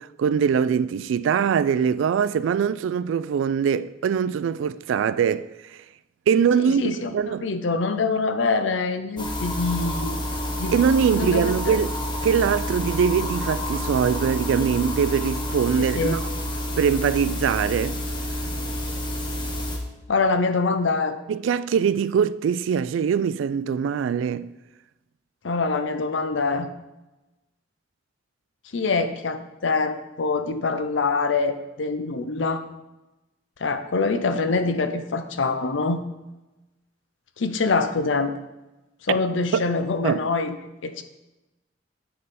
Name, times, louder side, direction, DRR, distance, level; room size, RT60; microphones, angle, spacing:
voice 1, 0.0-5.5 6.3-7.4 10.7-11.9 12.2-16.2 16.8-18.0 21.3-24.5 39.1-39.2 39.5-39.6 40.0-40.2, right 7 dB, 80° right, 0.3 m, -22 dB
voice 2, 6.6-7.1 7.4-10.2 10.6-10.8 11.1-11.8 15.8-16.2 20.1-21.2 25.4-26.7 28.7-32.6 33.6-36.0 37.4-38.4 39.0-40.6 40.8-41.0, left 4 dB, 75° left, 0.6 m, -24 dB
sound 1, 9.2-19.8, left 1 dB, 25° left, 1.0 m, -29 dB
7.7 x 5.5 x 4.1 m
head